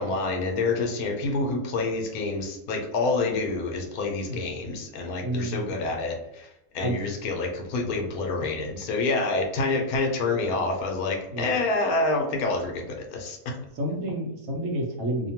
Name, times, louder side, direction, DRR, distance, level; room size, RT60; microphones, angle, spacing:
voice 1, 0.0-13.6, left 3 dB, 80° left, 3 dB, 1.1 m, -27 dB
voice 2, 5.2-5.8 6.8-7.0 8.4-8.5 11.3-11.6 13.7-15.3, right 1 dB, 65° right, 0 dB, 0.9 m, -30 dB
2.7 x 2.1 x 2.8 m, 0.86 s
omnidirectional pair, 1.6 m